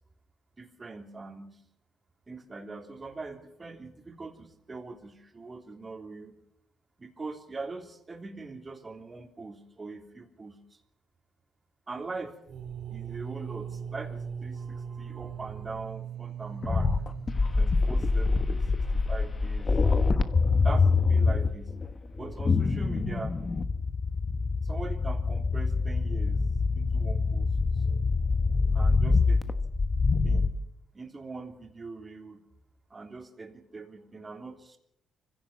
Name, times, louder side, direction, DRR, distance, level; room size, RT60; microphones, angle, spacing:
voice 1, 0.6-1.6 2.3-6.4 7.0-10.6 11.9-12.4 12.9-19.7 20.6-21.7 22.1-23.3 24.6-26.4 26.7-27.8 28.7-29.5 30.2-30.5 30.9-32.4 32.9-34.8, right 3 dB, 25° right, 4 dB, 3.2 m, -42 dB
sound 1, 12.5-20.2, right 7 dB, 70° right, 4.0 m, -41 dB
sound 2, 16.6-30.5, left 4 dB, 30° left, 1.2 m, -25 dB
24.5 x 16.0 x 7.3 m, 0.78 s
cardioid pair, 100°, 0 cm